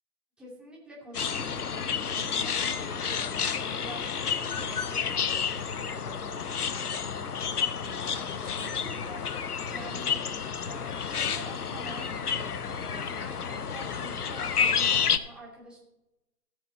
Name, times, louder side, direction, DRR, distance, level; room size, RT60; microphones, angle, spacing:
voice 1, 0.4-10.4 10.7-15.8, right 1 dB, ahead, -6 dB, 2.9 m, -47 dB
sound 1, 1.1-15.2, left 6 dB, 75° left, 0.9 m, -30 dB
17.5 x 6.4 x 4.2 m, 0.95 s
figure-of-eight pair, 135°, 46 cm